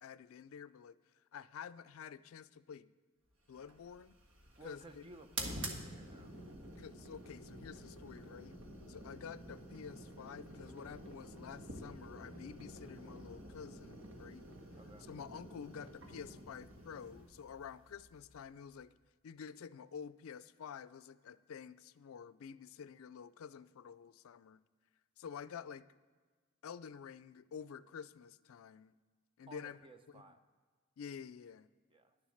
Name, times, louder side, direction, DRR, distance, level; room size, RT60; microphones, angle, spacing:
voice 1, 0.0-1.0 1.3-2.9 3.5-4.2 4.6-5.0 6.8-8.6 8.9-14.4 15.0-18.9 19.2-24.6 25.2-25.9 26.6-28.9 29.4-29.8 30.1-30.2 31.0-31.7, left 7 dB, 75° left, 16 dB, 0.4 m, -49 dB
sound 1, 3.5-18.8, right 1 dB, 65° right, 1.5 m, -49 dB
voice 2, 4.6-6.3 14.7-15.1 29.5-30.4 31.9-32.2, right 2 dB, 25° right, 7 dB, 0.7 m, -56 dB
11.0 x 7.2 x 6.4 m, 1.5 s
head